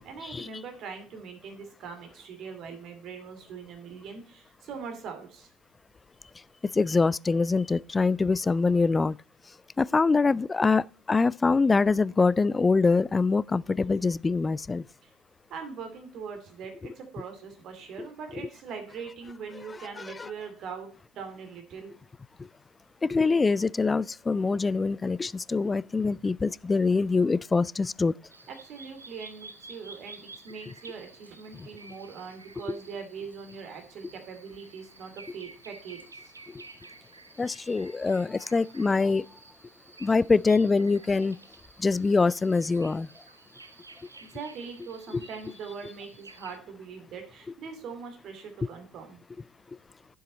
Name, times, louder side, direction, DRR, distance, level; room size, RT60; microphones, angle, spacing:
voice 1, 0.0-5.5 15.0-15.1 15.5-20.9 21.1-21.9 28.5-36.3 44.3-49.2, right 5 dB, 50° right, 2.6 m, -41 dB
voice 2, 6.7-9.2 9.8-14.8 20.2-20.3 23.0-28.1 36.5-36.6 37.4-39.2 40.0-41.4 41.8-43.1, left 4 dB, 20° left, 0.3 m, -24 dB
sound 1, 28.3-46.6, right 3 dB, 85° right, 0.6 m, -51 dB
9.5 x 7.6 x 4.0 m
figure-of-eight pair, 65°, 0 cm